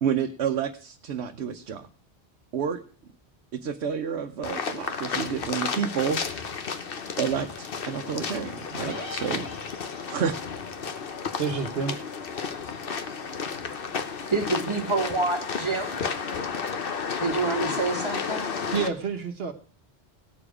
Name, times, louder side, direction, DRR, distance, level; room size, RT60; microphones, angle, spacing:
voice 1, 0.0-1.9 2.5-2.8 3.5-6.6 7.2-9.5 10.1-10.3, right 7 dB, 85° right, 5 dB, 1.0 m, -29 dB
sound 1, 4.4-18.9, left 5 dB, 60° left, 1.1 m, -32 dB
sound 2, 8.8-10.2, left 1 dB, 80° left, 3.0 m, -40 dB
voice 2, 11.4-11.9 18.7-19.5, right 5 dB, 65° right, 6 dB, 1.1 m, -28 dB
voice 3, 14.3-16.0 17.2-18.5, right 3 dB, 25° right, 3 dB, 1.7 m, -27 dB
17.5 x 7.0 x 4.9 m, 0.41 s
omnidirectional pair, 1.1 m